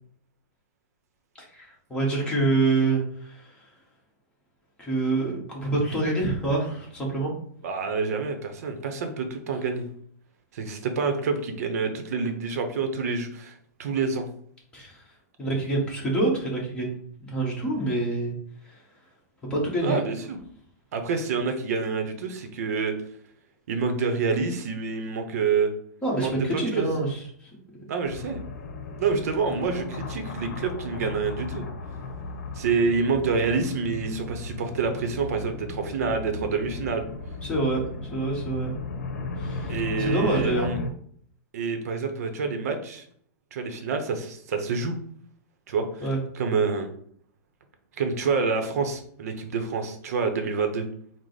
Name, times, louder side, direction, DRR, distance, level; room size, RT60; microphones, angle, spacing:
voice 1, 1.5-3.6 4.8-7.3 14.7-15.0 15.4-17.0 17.3-18.3 18.6-18.8 19.5-20.0 26.0-27.5 37.4-38.8 39.4-40.7 46.0-46.2, right 2 dB, 10° left, -3 dB, 1.1 m, -26 dB
voice 2, 7.6-9.8 10.5-14.3 19.8-20.4 20.9-22.9 23.7-25.7 26.2-26.9 27.9-28.4 29.0-31.6 32.5-37.1 39.7-40.8 41.5-43.0 43.5-44.9 45.7-46.1 46.3-46.9 48.0-50.9, right 5 dB, 60° right, 6 dB, 0.7 m, -27 dB
sound 1, 28.0-40.9, left 3 dB, 70° left, 0.7 m, -35 dB
4.7 x 2.0 x 4.0 m, 0.62 s
supercardioid pair, 165°, 9 cm